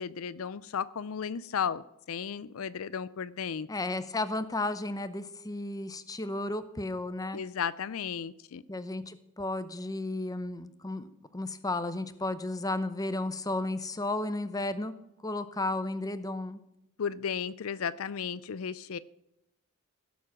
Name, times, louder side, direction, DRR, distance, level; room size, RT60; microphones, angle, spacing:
voice 1, 0.0-3.7 7.3-8.6 17.0-19.0, left 7 dB, 70° left, 17 dB, 0.5 m, -34 dB
voice 2, 3.7-7.4 8.7-14.9 15.2-16.6, left 2 dB, 15° left, 11 dB, 0.8 m, -33 dB
16.0 x 7.2 x 6.1 m, 0.84 s
head